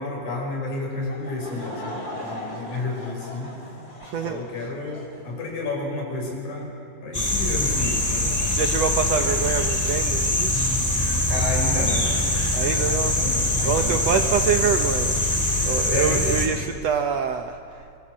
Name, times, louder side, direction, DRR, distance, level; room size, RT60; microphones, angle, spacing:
voice 1, 0.0-3.5 4.2-6.7 7.0-8.3 11.3-12.1 12.8-14.1 15.9-16.2, left 2 dB, 60° left, 0 dB, 6.3 m, -31 dB
Laughter / Crowd, 1.1-5.3, left 1 dB, 30° left, 3.8 m, -38 dB
voice 2, 4.1-4.4 8.3-10.7 12.5-18.0, right 7 dB, 65° right, 6 dB, 1.7 m, -26 dB
sound 1, 7.1-16.5, left 1 dB, 5° left, 3.4 m, -23 dB
26.0 x 24.0 x 7.5 m, 2.3 s
omnidirectional pair, 3.7 m